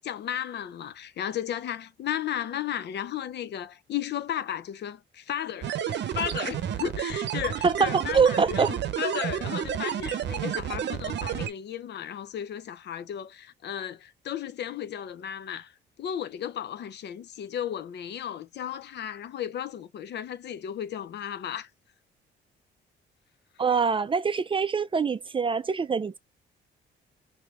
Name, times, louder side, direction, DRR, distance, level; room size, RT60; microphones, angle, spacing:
voice 1, 0.0-21.7, left 10 dB, 60° left, 0.6 m, -34 dB
sound 1, 5.6-11.5, right 9 dB, 60° right, 0.7 m, -30 dB
voice 2, 7.6-8.7 23.6-26.2, right 5 dB, 25° right, 0.4 m, -24 dB
3.2 x 2.7 x 3.5 m
cardioid pair, 90°, 20 cm